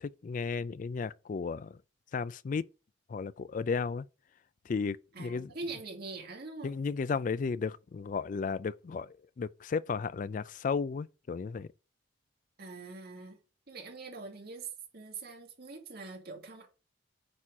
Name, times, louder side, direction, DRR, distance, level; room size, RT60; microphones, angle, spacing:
voice 1, 0.0-1.8 2.1-2.7 3.1-4.1 4.7-5.5 6.6-11.7, left 5 dB, 40° left, 0.3 m, -34 dB
voice 2, 5.1-6.8 12.6-13.4 13.7-16.7, right 3 dB, 55° right, 1.9 m, -43 dB
8.9 x 4.3 x 4.7 m
head